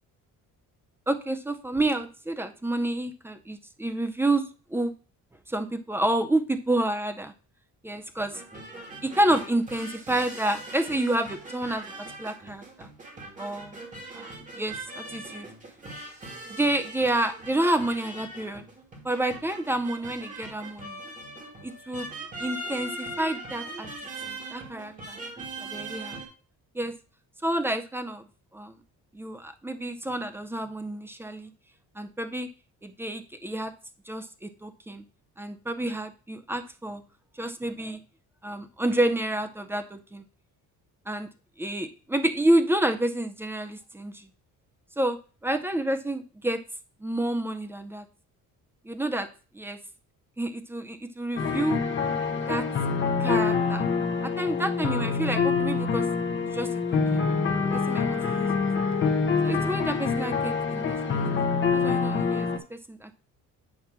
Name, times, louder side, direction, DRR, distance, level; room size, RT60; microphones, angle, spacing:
voice 1, 1.1-4.4 4.7-4.9 5.5-7.3 7.8-8.4 9.0-11.9 12.2-12.9 13.4-13.8 14.1-15.5 16.5-18.6 19.0-21.0 21.6-22.1 22.4-23.9 24.2-25.2 25.6-26.2 26.7-26.9 27.4-28.3 28.5-28.8 29.1-31.5 32.0-32.5 32.8-33.7 34.1-35.0 35.4-37.0 37.4-38.0 38.4-40.2 41.1-41.3 41.6-44.3 45.0-46.6 47.0-48.1 48.8-49.3 49.5-49.8 50.4-51.8 52.5-52.6 53.2-53.8 54.2-56.1 56.4-56.7 57.1-57.2 57.7-58.5 59.4-63.2, right 1 dB, 5° right, 8 dB, 0.4 m, -29 dB
sound 1, 8.2-26.3, right 2 dB, 20° right, 1.5 m, -41 dB
sound 2, 51.4-62.6, left 5 dB, 35° left, 0.9 m, -26 dB
8.5 x 2.9 x 5.9 m, 0.36 s
cardioid pair, 175°, 34 cm